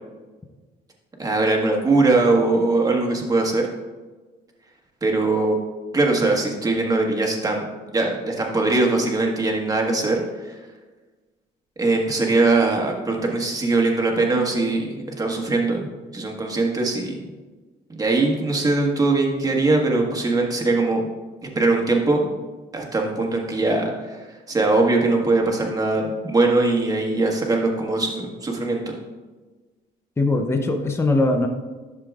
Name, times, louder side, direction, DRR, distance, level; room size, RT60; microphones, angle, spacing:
voice 1, 1.2-3.7 5.0-5.6 5.9-7.7 7.9-10.6 11.8-15.9 16.1-17.1 17.9-21.0 21.5-22.3 22.7-24.2 24.5-28.9, right 3 dB, 20° right, 0 dB, 1.5 m, -21 dB
voice 2, 30.2-31.5, left 2 dB, 15° left, 4 dB, 0.7 m, -20 dB
11.5 x 6.7 x 2.5 m, 1.3 s
cardioid pair, 110°, 17 cm